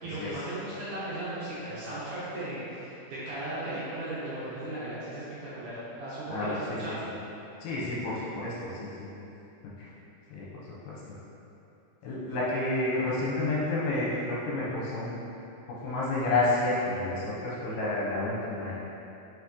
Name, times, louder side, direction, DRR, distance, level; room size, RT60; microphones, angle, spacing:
voice 1, 0.0-7.0, right 1 dB, 60° right, -11 dB, 2.3 m, -36 dB
voice 2, 6.3-6.8 7.0-7.1 7.6-9.1 9.8-9.9 10.3-11.0 12.0-15.1 15.7-18.7, left 2 dB, 75° left, -7 dB, 2.9 m, -30 dB
6.1 x 6.0 x 3.1 m, 3.0 s
omnidirectional pair, 4.7 m